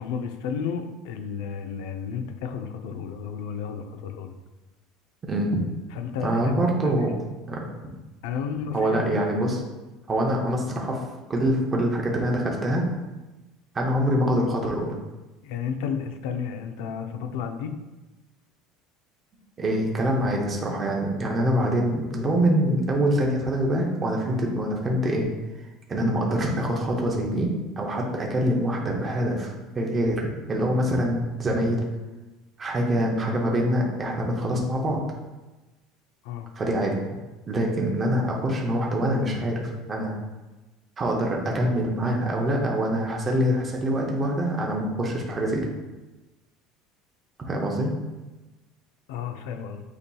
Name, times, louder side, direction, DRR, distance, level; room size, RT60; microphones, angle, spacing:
voice 1, 0.0-4.3 5.9-6.6 6.8-7.2 8.2-9.2 15.4-17.7 36.2-36.5 49.1-49.8, left 7 dB, 80° left, 7 dB, 0.5 m, -32 dB
voice 2, 5.3-5.6 6.2-7.1 7.5-7.9 8.7-9.6 10.1-12.8 13.7-14.9 19.6-25.3 25.9-27.5 27.8-31.8 32.6-35.0 36.6-37.0 37.5-40.1 41.0-45.7 47.4-47.9, right 1 dB, 20° right, -1 dB, 0.6 m, -25 dB
8.1 x 2.8 x 2.3 m, 1.1 s
cardioid pair, 170°, 0 cm